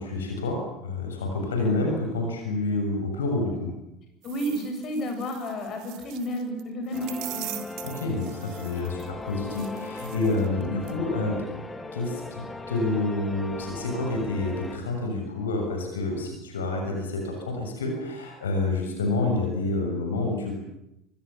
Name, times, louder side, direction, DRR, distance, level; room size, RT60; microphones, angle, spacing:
voice 1, 0.0-3.7 7.8-11.5 11.9-20.5, left 2 dB, 75° left, 2 dB, 7.0 m, -28 dB
voice 2, 4.2-7.7, equal, 40° left, 5 dB, 8.0 m, -31 dB
sound 1, 4.2-6.6 6.9-9.1 9.5-10.6 10.9-11.0, right 16 dB, 55° right, 2.2 m, -42 dB
sound 2, 6.9-14.8, left 2 dB, 10° left, 3.4 m, -38 dB
27.0 x 26.0 x 7.3 m, 0.85 s
figure-of-eight pair, 70°, 0 cm